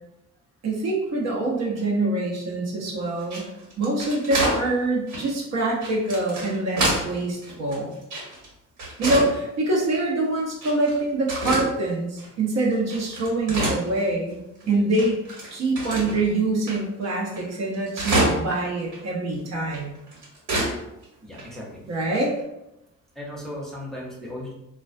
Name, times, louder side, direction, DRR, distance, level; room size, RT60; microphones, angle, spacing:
voice 1, 0.6-3.5 3.8-7.9 9.0-14.4 14.7-15.2 15.5-20.0 21.9-22.3, right 2 dB, 60° right, -2 dB, 0.7 m, -25 dB
sound 1, 3.2-4.6 5.1-5.2 5.8-7.1 7.4-8.5 8.8-9.3 9.8-10.0 10.6-11.0 11.3-11.7 12.2-12.3 12.7-14.3 14.6-14.7 15.0-16.2 16.7-16.8 17.0-17.1 17.3-18.6 18.9-19.0 19.7-20.7 21.0-21.1 21.3-21.4 22.1-22.4, right 1 dB, 80° right, 1.4 m, -27 dB
voice 2, 21.2-21.8 23.1-24.5, left 1 dB, ahead, -4 dB, 0.7 m, -36 dB
2.3 x 2.2 x 2.4 m, 0.89 s
cardioid pair, 90°, 30 cm